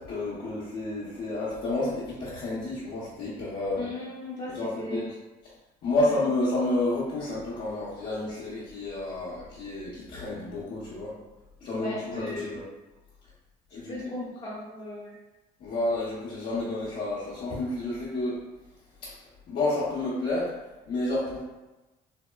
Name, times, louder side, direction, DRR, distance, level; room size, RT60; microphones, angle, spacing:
voice 1, 0.0-3.8 4.5-5.1 5.8-11.1 11.6-12.6 13.7-13.9 15.6-18.4 19.0-19.1 19.5-20.5 20.9-21.4, left 2 dB, 60° left, -9 dB, 0.8 m, -30 dB
voice 2, 3.8-5.1 6.0-6.2 11.6-12.6 13.9-15.1, left 2 dB, 35° left, -8 dB, 0.8 m, -37 dB
3.5 x 2.0 x 2.2 m, 1.1 s
cardioid pair, 110°, 17 cm